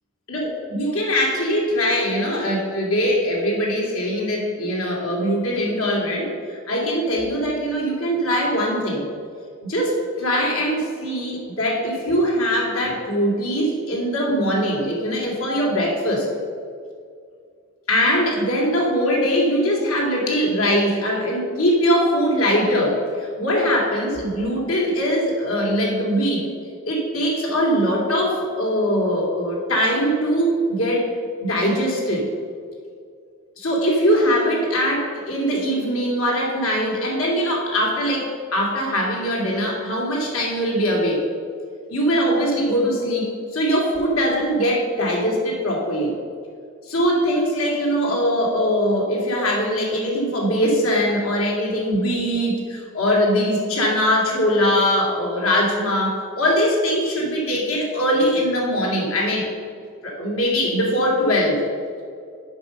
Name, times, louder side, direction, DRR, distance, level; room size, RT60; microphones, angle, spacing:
voice 1, 0.3-9.0 9.7-16.3 17.9-26.5 26.9-31.1 31.4-32.3 33.6-41.2 41.9-46.1 46.9-59.5 60.0-61.6, equal, 85° left, -3 dB, 2.4 m, -21 dB
8.0 x 5.5 x 6.5 m, 2.2 s
head